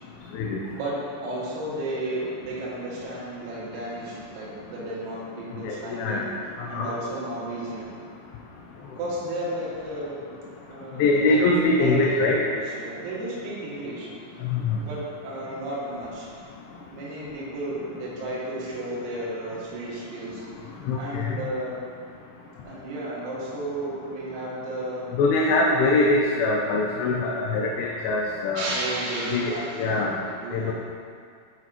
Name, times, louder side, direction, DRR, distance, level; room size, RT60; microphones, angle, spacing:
voice 1, 0.7-6.2 6.7-7.9 9.0-10.2 10.7-14.1 14.8-16.3 16.9-20.4 21.0-21.8 22.6-25.1 28.6-30.0 30.3-30.7, right 1 dB, 90° right, -6 dB, 4.1 m, -33 dB
voice 2, 5.6-6.3 6.6-6.9 11.0-12.4 14.4-14.8 20.9-21.4 25.1-28.7 29.3-30.2 30.5-30.7, left 2 dB, 90° left, -1 dB, 2.6 m, -23 dB
9.4 x 5.8 x 2.4 m, 2.3 s
omnidirectional pair, 6.0 m